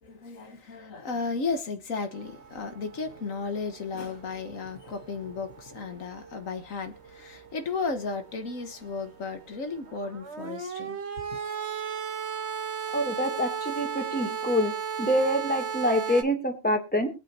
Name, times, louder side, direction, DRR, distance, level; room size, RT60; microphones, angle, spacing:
voice 1, 0.0-11.0, left 4 dB, 85° left, 1.7 m, -34 dB
sound 1, 2.1-16.2, right 6 dB, 55° right, 1.6 m, -37 dB
voice 2, 12.9-14.7 15.0-17.1, equal, 5° left, 2.7 m, -26 dB
23.0 x 8.4 x 2.8 m
omnidirectional pair, 1.3 m